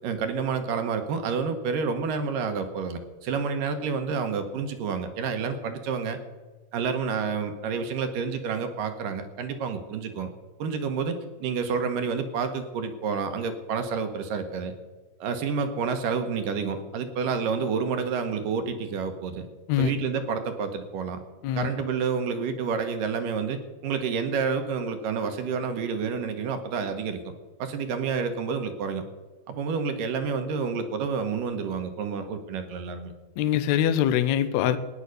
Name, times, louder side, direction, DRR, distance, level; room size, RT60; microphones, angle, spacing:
voice 1, 0.0-6.2 6.7-10.3 10.6-11.2 11.4-14.7 15.2-19.5 19.8-21.2 21.6-27.2 27.6-29.0 29.5-33.1, right 5 dB, 70° right, 2.6 m, -29 dB
voice 2, 33.4-34.8, left 10 dB, 85° left, 1.6 m, -23 dB
15.0 x 10.0 x 6.5 m
omnidirectional pair, 4.3 m